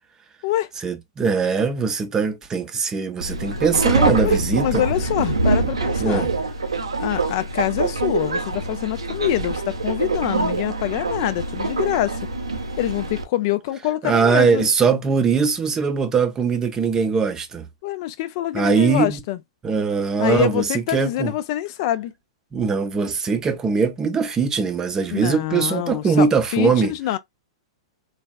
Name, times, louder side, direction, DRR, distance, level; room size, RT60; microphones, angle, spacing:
voice 1, 0.8-4.8 6.0-6.3 14.0-17.7 18.5-19.2 19.6-20.7 20.9-21.3 22.5-26.9, right 5 dB, 20° right, 0.5 m, -21 dB
Subway metro underground, 3.2-13.2, right 3 dB, 85° right, 0.6 m, -24 dB
voice 2, 4.2-6.3 7.0-12.2 12.8-14.7 17.8-19.4 20.2-22.1 25.1-26.3 26.5-27.2, left 14 dB, 50° left, 0.4 m, -25 dB
3.3 x 2.3 x 2.2 m
hypercardioid pair, 110°, 3 cm